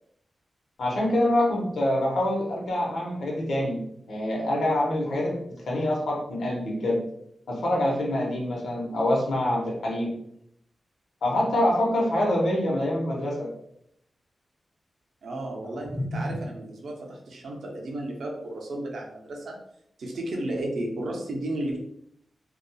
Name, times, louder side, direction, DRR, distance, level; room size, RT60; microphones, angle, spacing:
voice 1, 0.8-3.8 4.1-7.0 7.5-10.2 11.2-13.5 15.9-16.4, left 1 dB, 85° left, -2 dB, 0.8 m, -25 dB
voice 2, 15.2-19.6 20.0-21.8, right 1 dB, 90° right, 0 dB, 0.6 m, -33 dB
2.7 x 2.3 x 2.2 m, 0.72 s
wide cardioid pair, 110°, 0 cm